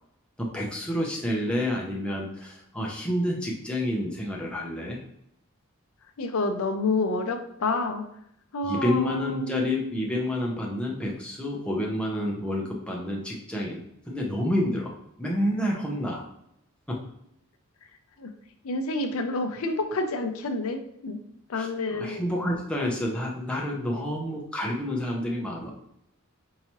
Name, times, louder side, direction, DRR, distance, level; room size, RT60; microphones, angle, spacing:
voice 1, 0.4-5.0 8.6-16.2 16.9-17.0 21.6-25.7, left 1 dB, 5° left, -3 dB, 0.7 m, -29 dB
voice 2, 6.2-8.0 8.5-9.7 18.2-18.3 18.6-21.2 21.5-22.3, left 2 dB, 70° left, 6 dB, 0.5 m, -28 dB
4.6 x 2.8 x 2.9 m, 0.74 s
head